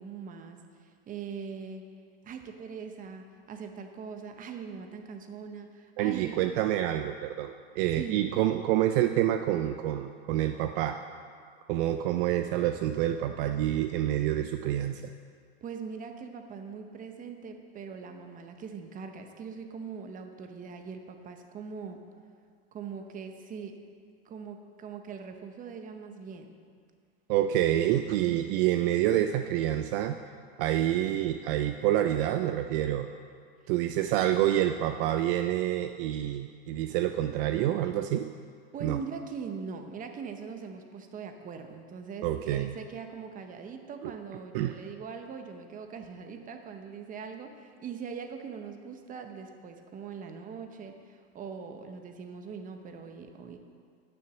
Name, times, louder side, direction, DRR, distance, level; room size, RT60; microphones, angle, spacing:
voice 1, 0.0-1.8 2.2-6.4 8.0-8.2 15.6-22.0 22.7-23.7 24.2-26.6 28.1-28.8 38.7-53.6, right 6 dB, 25° right, 6 dB, 0.9 m, -41 dB
voice 2, 6.0-11.0 11.7-15.0 27.3-30.2 30.6-33.1 33.7-38.3 38.8-39.0 42.2-42.7 44.0-44.1 44.5-44.7, right 12 dB, 55° right, 8 dB, 0.5 m, -27 dB
9.9 x 6.7 x 6.1 m, 2.1 s
supercardioid pair, 125°, 32 cm